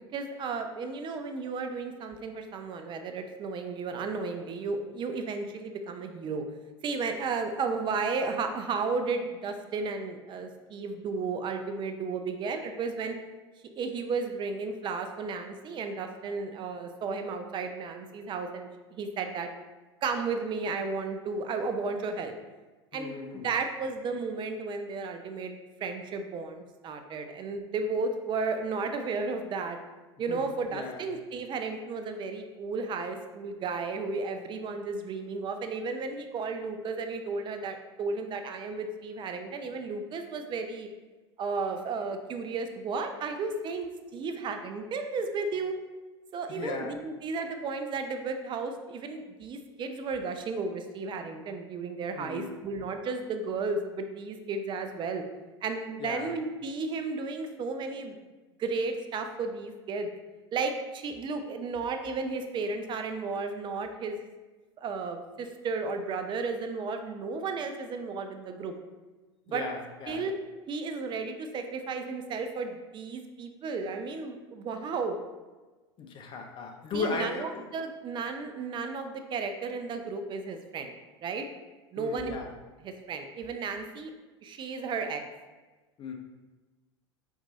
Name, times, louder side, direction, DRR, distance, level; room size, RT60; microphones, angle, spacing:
voice 1, 0.0-6.4 6.8-13.2 13.7-19.5 20.0-22.4 22.9-23.2 23.4-29.8 30.2-40.9 41.4-43.9 44.1-45.8 46.3-55.2 55.6-58.2 58.6-60.1 60.5-64.2 64.8-68.7 69.5-69.6 70.1-70.3 70.7-75.1 76.9-80.9 81.2-81.5 81.9-82.4 82.8-84.1 84.4-85.2, right 4 dB, 35° right, 6 dB, 0.5 m, -33 dB
voice 2, 22.9-23.5 30.3-30.4 30.7-31.0 46.5-47.0 52.1-52.5 56.0-56.3 69.5-70.2 76.0-77.7 82.0-82.5 86.0-86.1, left 4 dB, 35° left, 3 dB, 0.7 m, -36 dB
4.5 x 2.7 x 3.9 m, 1.2 s
hypercardioid pair, 80°, 14 cm